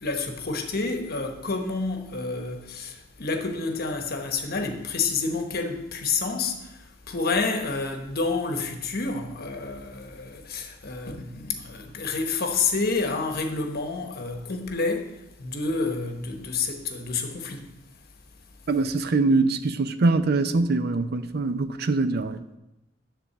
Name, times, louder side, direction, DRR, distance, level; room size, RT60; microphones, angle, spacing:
voice 1, 0.0-17.7, left 4 dB, 55° left, 1.1 m, -29 dB
voice 2, 18.7-22.4, right 3 dB, 55° right, 0.5 m, -23 dB
10.0 x 3.8 x 6.8 m
head